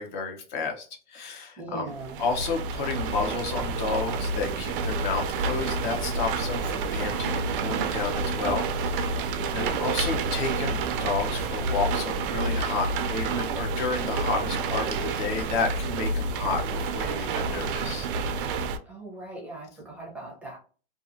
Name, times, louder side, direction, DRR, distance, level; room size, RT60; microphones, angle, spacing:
voice 1, 0.0-1.9 2.2-18.1, left 4 dB, 50° left, 3 dB, 0.8 m, -31 dB
voice 2, 1.6-2.2 7.0-7.9 9.3-9.8 18.9-20.6, right 2 dB, 5° right, -4 dB, 0.6 m, -40 dB
sound 1, 1.9-18.8, right 4 dB, 60° right, 0.5 m, -29 dB
2.8 x 2.4 x 2.5 m, 0.39 s
supercardioid pair, 160°, 30 cm